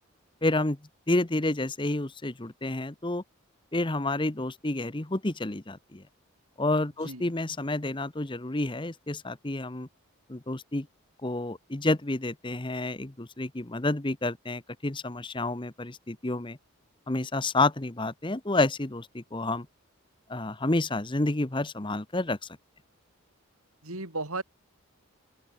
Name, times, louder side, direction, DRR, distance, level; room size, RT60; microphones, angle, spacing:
voice 1, 0.4-0.8 1.1-3.2 3.7-6.0 6.6-9.9 10.3-10.9 11.2-16.6 17.1-19.7 20.3-22.4, left 2 dB, 20° left, 0.9 m, -29 dB
voice 2, 23.8-24.4, right 3 dB, 80° right, 7.5 m, -34 dB
open air
head